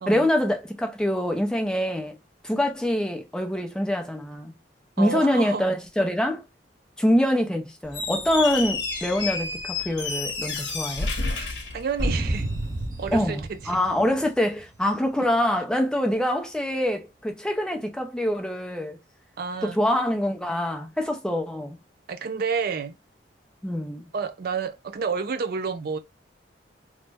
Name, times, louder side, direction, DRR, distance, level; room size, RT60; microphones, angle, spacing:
voice 1, 0.1-2.2 2.4-4.5 5.0-6.4 7.0-11.1 13.1-19.0 19.6-21.8 23.6-24.1, left 1 dB, 5° left, 0.5 m, -25 dB
voice 2, 5.0-5.6 11.7-12.5 13.0-13.8 19.4-19.8 22.1-23.0 24.1-26.0, right 5 dB, 55° right, 0.4 m, -29 dB
Squeak, 7.8-12.5, left 4 dB, 75° left, 0.9 m, -30 dB
sound 1, 12.0-14.7, right 1 dB, 20° right, 0.9 m, -30 dB
3.0 x 2.1 x 3.3 m
head